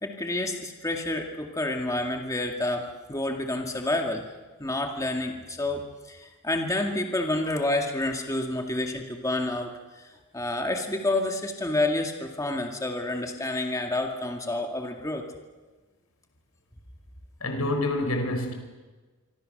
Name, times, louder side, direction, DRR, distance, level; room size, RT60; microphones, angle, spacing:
voice 1, 0.0-4.2 4.6-10.1 10.3-15.3, left 2 dB, 15° left, 2 dB, 2.0 m, -29 dB
voice 2, 17.4-18.5, left 1 dB, 85° left, 6 dB, 4.9 m, -27 dB
26.5 x 25.0 x 6.6 m, 1.3 s
head